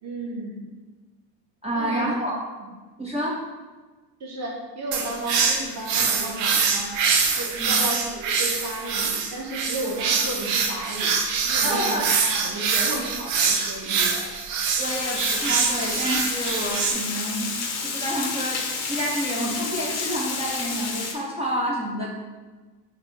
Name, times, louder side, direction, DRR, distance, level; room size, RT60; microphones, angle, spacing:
voice 1, 0.0-0.7 1.7-2.3 2.6-2.7 4.2-6.9 7.3-11.2 11.4-14.3, right 1 dB, 30° right, -2 dB, 1.2 m, -33 dB
voice 2, 1.6-2.4 3.0-3.4 7.6-7.8 11.6-12.1 14.8-17.5 17.8-18.6 18.9-22.1, equal, 15° right, -4 dB, 0.6 m, -28 dB
sound 1, 4.9-16.9, right 5 dB, 70° right, 0.7 m, -24 dB
Water, 14.8-21.1, left 4 dB, 35° left, 0.7 m, -30 dB
3.3 x 2.6 x 4.2 m, 1.3 s
hypercardioid pair, 80°, 49 cm